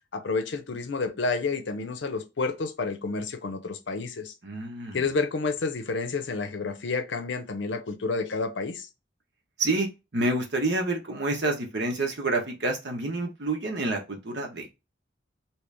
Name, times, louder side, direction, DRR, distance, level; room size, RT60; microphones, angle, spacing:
voice 1, 0.1-4.3 4.9-8.9, left 4 dB, 70° left, 0.6 m, -30 dB
voice 2, 4.4-5.0 9.6-14.7, right 2 dB, 60° right, 1.0 m, -28 dB
3.1 x 2.9 x 3.3 m
head